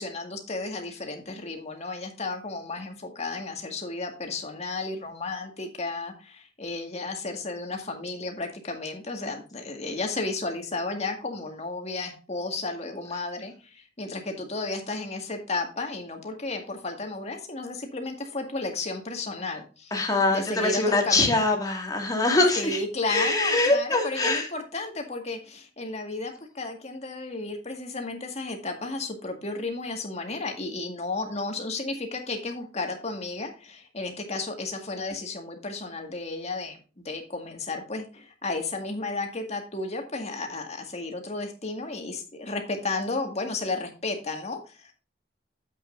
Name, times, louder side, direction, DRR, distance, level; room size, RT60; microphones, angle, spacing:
voice 1, 0.0-19.9 20.3-21.5 22.6-44.9, left 3 dB, 35° left, 3 dB, 1.9 m, -33 dB
voice 2, 19.9-22.8 23.1-24.5, left 2 dB, 20° left, 1 dB, 2.2 m, -23 dB
9.4 x 8.1 x 2.6 m, 0.33 s
head